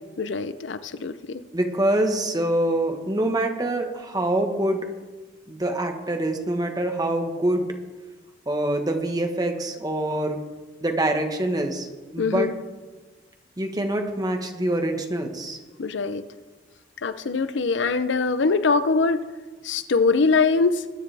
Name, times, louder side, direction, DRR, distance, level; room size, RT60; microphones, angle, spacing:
voice 1, 0.2-1.4 12.2-12.5 15.8-16.2 17.0-19.2 19.6-20.8, left 4 dB, 75° left, 13 dB, 0.6 m, -23 dB
voice 2, 1.5-4.8 5.5-7.7 8.5-10.4 10.8-11.9 12.1-12.5 13.6-15.6, right 1 dB, 20° right, 4 dB, 1.3 m, -25 dB
21.0 x 9.8 x 3.4 m, 1.3 s
head